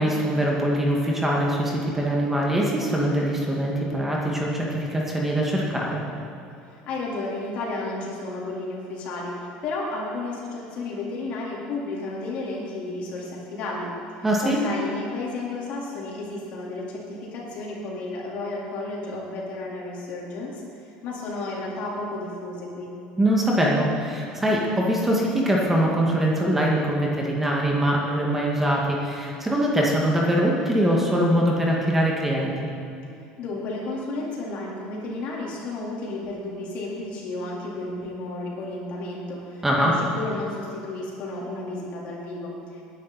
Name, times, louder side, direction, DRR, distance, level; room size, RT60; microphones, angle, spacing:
voice 1, 0.0-6.0 14.2-14.6 23.2-32.7 39.6-39.9, right 1 dB, 10° right, -3 dB, 1.9 m, -23 dB
voice 2, 6.6-22.9 33.4-42.8, left 2 dB, 55° left, -4 dB, 4.0 m, -32 dB
18.5 x 10.5 x 4.3 m, 2.6 s
cardioid pair, 135°, 3 cm